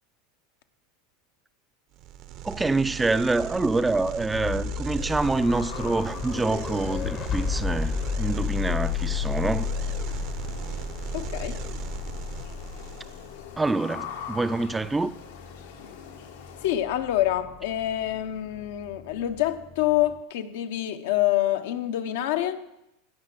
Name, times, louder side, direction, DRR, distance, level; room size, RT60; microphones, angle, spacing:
sound 1, 1.9-13.4, right 11 dB, 55° right, 0.8 m, -39 dB
voice 1, 2.4-9.7 13.6-15.1, right 3 dB, 10° right, 0.4 m, -26 dB
sound 2, 4.3-20.2, left 7 dB, 35° left, 0.8 m, -33 dB
sound 3, 4.9-16.7, left 7 dB, 90° left, 1.7 m, -44 dB
voice 2, 11.1-11.6 15.8-15.9 16.6-22.6, left 13 dB, 75° left, 0.8 m, -26 dB
17.0 x 5.9 x 5.9 m
supercardioid pair, 115°, 0 cm